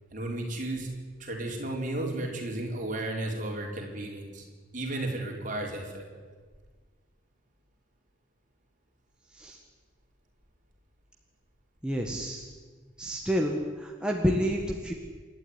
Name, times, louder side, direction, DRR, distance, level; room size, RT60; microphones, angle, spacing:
voice 1, 0.1-0.9 1.2-4.4 4.7-6.0, right 2 dB, 40° right, 0 dB, 4.7 m, -33 dB
voice 2, 11.8-12.5 13.0-14.9, equal, 5° right, 0 dB, 1.8 m, -29 dB
28.5 x 12.0 x 9.9 m, 1.5 s
head